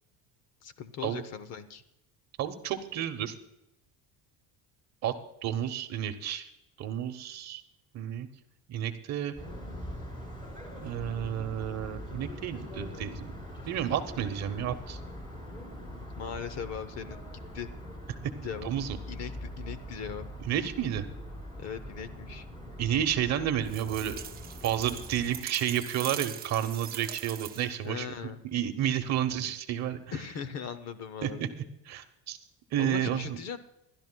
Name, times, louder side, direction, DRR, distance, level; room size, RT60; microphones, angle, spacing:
voice 1, 0.6-1.8 15.7-17.7 18.4-18.7 19.1-20.3 21.6-22.5 27.8-28.4 30.1-31.6 32.8-33.6, left 7 dB, 40° left, 12 dB, 0.8 m, -39 dB
voice 2, 2.4-3.3 5.0-5.1 5.4-6.5 6.8-7.6 7.9-8.3 8.7-9.3 10.8-13.3 13.7-15.0 18.6-18.9 20.5-21.1 22.8-24.2 24.6-28.1 28.5-30.0 31.2-31.5 31.9-32.4 32.7-33.4, right 10 dB, 45° right, 8 dB, 0.9 m, -31 dB
sound 1, 9.3-25.4, equal, 15° left, 4.4 m, -42 dB
sound 2, 23.7-27.9, right 9 dB, 25° right, 0.6 m, -41 dB
27.0 x 12.0 x 2.3 m, 0.86 s
cardioid pair, 170°, 39 cm